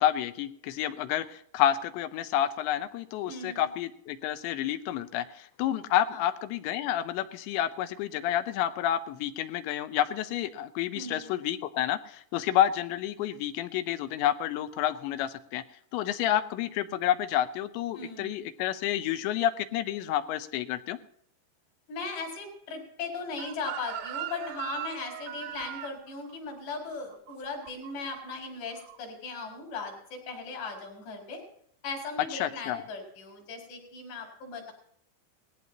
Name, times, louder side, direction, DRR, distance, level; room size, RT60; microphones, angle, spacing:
voice 1, 0.0-15.6 15.9-21.0 32.3-32.8, left 11 dB, 85° left, 11 dB, 3.1 m, -29 dB
voice 2, 3.3-3.7 6.1-6.2 10.9-11.3 17.9-18.3 21.9-31.4 31.8-34.7, left 3 dB, 70° left, -1 dB, 6.4 m, -38 dB
Chicken rooster, 23.4-28.3 28.6-29.0, right 11 dB, 75° right, 2.4 m, -40 dB
19.5 x 15.0 x 2.9 m, 0.66 s
omnidirectional pair, 5.1 m